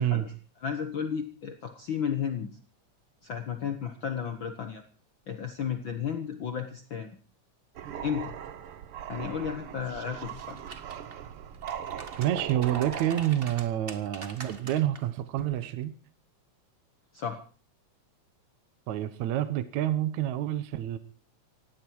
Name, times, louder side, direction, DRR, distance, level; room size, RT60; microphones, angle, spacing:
voice 1, 0.0-2.5 3.2-4.8 5.3-7.1 8.0-8.4 9.1-10.6 17.1-17.4, left 7 dB, 55° left, 7 dB, 1.5 m, -33 dB
sound 1, 7.8-13.8, right 9 dB, 60° right, 1.7 m, -40 dB
sound 2, 10.2-11.1 11.5-15.0 15.4-15.6, right 4 dB, 30° right, 1.0 m, -45 dB
voice 2, 12.2-16.0 18.9-21.0, right 12 dB, 75° right, 12 dB, 2.3 m, -28 dB
18.5 x 16.0 x 4.6 m, 0.40 s
omnidirectional pair, 3.4 m